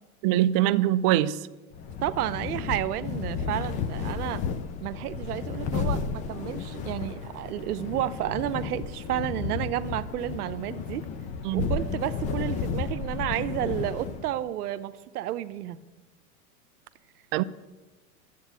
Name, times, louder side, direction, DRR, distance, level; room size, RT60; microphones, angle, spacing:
voice 1, 0.2-1.4 11.4-11.7 17.3-17.4, right 13 dB, 40° right, 0.5 m, -22 dB
sound 1, 1.7-14.5, left 5 dB, 20° left, 0.3 m, -33 dB
voice 2, 2.0-4.4 4.8-11.0 11.5-15.8, right 13 dB, 85° right, 0.8 m, -31 dB
12.0 x 8.3 x 8.1 m
supercardioid pair, 135°, 44 cm